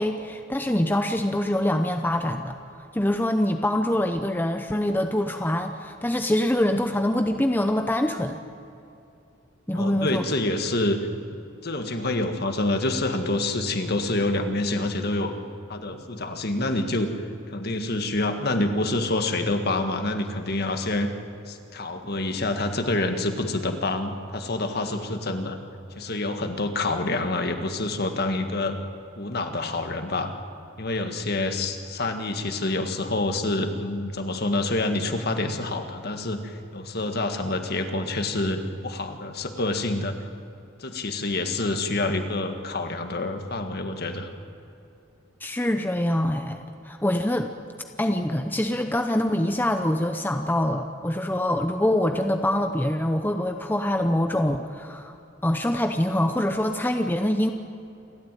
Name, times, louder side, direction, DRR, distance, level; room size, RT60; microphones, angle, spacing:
voice 1, 0.0-2.6 2.9-8.4 9.7-10.2 45.4-47.5 48.0-55.1 55.4-57.5, left 1 dB, 10° left, 5 dB, 0.7 m, -24 dB
voice 2, 9.7-11.0 11.6-15.3 15.7-17.1 17.5-21.1 21.5-25.6 26.0-28.8 29.2-30.3 30.8-40.1 40.8-44.3, left 2 dB, 50° left, 6 dB, 1.8 m, -27 dB
28.5 x 13.0 x 9.2 m, 2.7 s
head